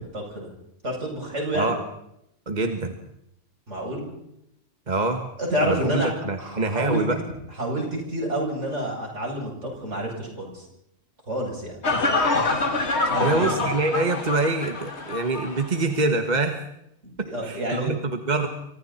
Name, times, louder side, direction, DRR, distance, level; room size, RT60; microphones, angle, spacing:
voice 1, 0.1-0.5 0.8-1.8 3.7-4.1 5.4-6.1 6.4-7.0 7.6-10.7 11.3-11.8 13.0-13.5 17.0-17.9, right 1 dB, 70° right, -1 dB, 8.6 m, -28 dB
voice 2, 2.5-2.9 4.9-5.3 5.6-7.2 13.2-16.6 17.2-18.5, right 3 dB, 35° right, 5 dB, 1.7 m, -25 dB
sound 1, 11.8-15.7 16.0-16.1, left 3 dB, 60° left, 2.5 m, -25 dB
29.0 x 25.5 x 4.4 m, 0.79 s
omnidirectional pair, 1.3 m